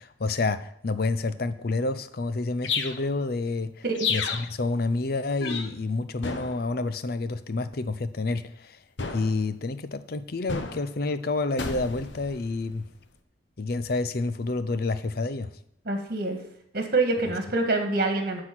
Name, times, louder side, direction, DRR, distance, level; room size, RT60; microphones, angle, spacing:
voice 1, 0.0-3.8 4.1-8.8 9.1-12.8 13.6-15.5, left 3 dB, 55° left, 12 dB, 0.6 m, -29 dB
sound 1, 2.6-3.0 3.9-4.5 5.4-5.7 6.2-6.7 9.0-9.4 10.5-10.9 11.6-12.8, left 5 dB, 80° left, 1.0 m, -31 dB
voice 2, 15.9-16.4 16.7-18.4, right 2 dB, 55° right, 4 dB, 1.7 m, -26 dB
12.0 x 4.3 x 6.1 m, 0.71 s
head